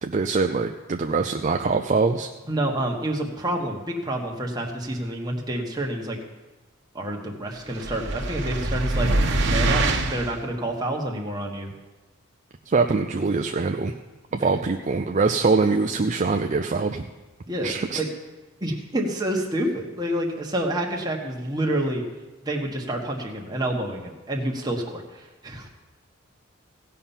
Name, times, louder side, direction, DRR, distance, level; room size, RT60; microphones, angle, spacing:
voice 1, 0.0-2.3 12.7-13.9 14.3-17.1 17.6-18.0, right 4 dB, 35° right, 5 dB, 0.4 m, -23 dB
voice 2, 2.5-6.2 6.9-9.1 9.4-11.7 14.4-14.5 17.5-18.1 18.6-22.0 22.4-25.7, right 1 dB, 20° right, 0 dB, 1.4 m, -28 dB
sound 1, 7.7-10.4, right 2 dB, 55° right, 1.1 m, -24 dB
17.0 x 5.7 x 7.2 m, 1.2 s
head